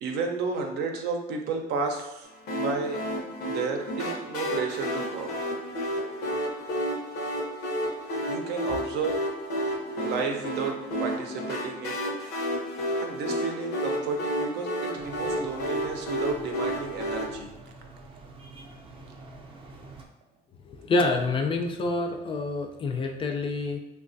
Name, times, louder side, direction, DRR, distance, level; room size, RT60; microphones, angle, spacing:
voice 1, 0.0-3.0 3.5-5.3 8.3-9.1 10.0-12.0 13.0-17.5, right 4 dB, 80° right, 3 dB, 0.5 m, -32 dB
sound 1, 2.5-17.2, equal, 80° left, 0.8 m, -31 dB
sound 2, 15.0-20.1, right 2 dB, 30° right, 0.5 m, -47 dB
voice 2, 20.6-23.8, left 3 dB, 30° left, 4 dB, 0.4 m, -27 dB
3.1 x 2.3 x 2.5 m, 1.0 s
cardioid pair, 110°, 17 cm